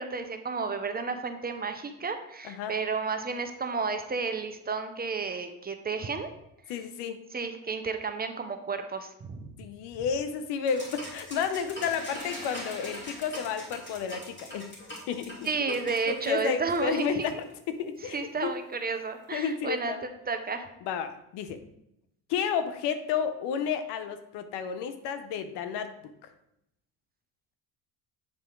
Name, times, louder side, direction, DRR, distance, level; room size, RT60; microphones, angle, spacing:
voice 1, 0.0-6.3 7.3-9.5 15.4-17.3 18.1-19.9 20.3-20.7, right 4 dB, 25° right, 7 dB, 0.7 m, -32 dB
voice 2, 2.4-2.7 6.7-7.2 9.6-14.7 15.1-15.3 15.7-15.8 16.1-17.4 17.7-18.5 19.3-20.0 20.8-21.6 22.3-25.9, left 7 dB, 75° left, 10 dB, 0.8 m, -31 dB
sound 1, 10.7-17.5, left 1 dB, 25° left, 2.7 m, -42 dB
7.5 x 4.3 x 3.7 m, 0.81 s
cardioid pair, 95°, 40 cm